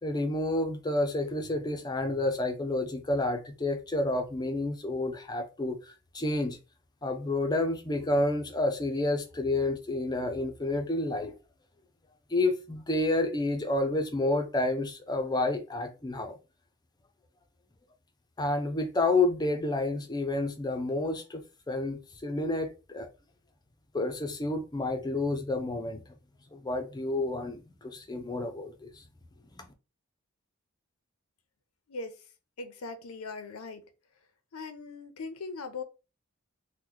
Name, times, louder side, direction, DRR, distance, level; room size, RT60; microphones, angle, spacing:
voice 1, 0.0-5.8 6.1-6.6 7.0-11.3 12.3-16.4 18.4-23.1 23.9-26.0 26.5-29.0 29.6-29.7, left 2 dB, 20° left, 0.5 m, -29 dB
voice 2, 31.9-32.3 32.6-33.8 34.5-35.8, left 3 dB, 85° left, 0.6 m, -40 dB
3.0 x 2.1 x 3.8 m
head